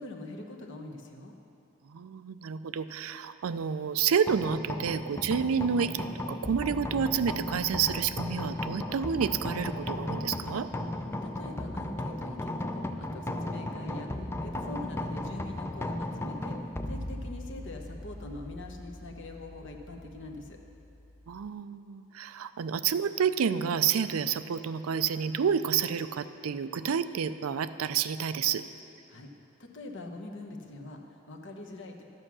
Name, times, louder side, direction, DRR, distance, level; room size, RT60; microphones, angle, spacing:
voice 1, 0.0-1.3 11.0-20.6 29.1-29.3 29.6-32.0, left 2 dB, 60° left, 3 dB, 1.0 m, -43 dB
voice 2, 1.8-10.7 21.3-28.6, right 7 dB, 80° right, 12 dB, 0.4 m, -29 dB
sound 1, 4.3-21.5, left 1 dB, 10° left, 0.4 m, -36 dB
12.0 x 7.7 x 6.1 m, 2.8 s
head